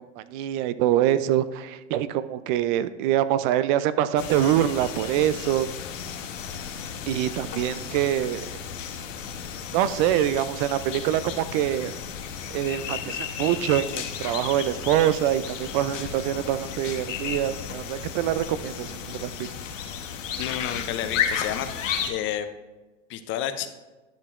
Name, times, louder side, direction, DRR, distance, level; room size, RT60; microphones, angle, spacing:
voice 1, 0.0-5.7 7.1-8.5 9.7-11.9 12.5-19.5, right 12 dB, 40° right, 15 dB, 0.4 m, -25 dB
sound 1, 4.2-22.1, left 7 dB, 85° left, 1.1 m, -33 dB
voice 2, 20.4-21.7 22.1-22.5 23.1-23.7, left 11 dB, 30° left, 10 dB, 0.6 m, -30 dB
11.5 x 6.7 x 2.5 m, 1.2 s
hypercardioid pair, 120°, 37 cm